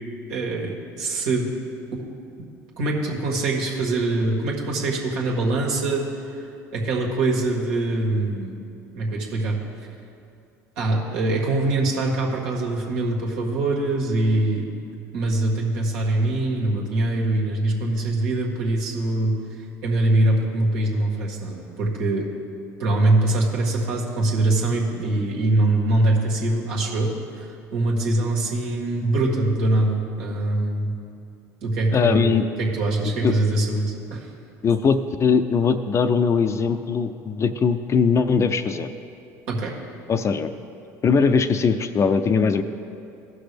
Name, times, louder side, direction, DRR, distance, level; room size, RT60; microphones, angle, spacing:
voice 1, 0.3-1.5 2.8-6.1 6.7-8.6 8.9-9.6 10.8-14.7 15.1-19.4 19.8-22.3 22.8-27.5 27.7-31.0 31.6-34.3 39.5-39.7, right 2 dB, 75° right, -2 dB, 1.8 m, -23 dB
voice 2, 31.9-32.4 33.2-33.3 34.6-38.9 40.1-40.5 41.0-42.6, left 5 dB, 35° left, 9 dB, 0.5 m, -20 dB
15.5 x 6.0 x 3.4 m, 2.6 s
supercardioid pair, 85°, 9 cm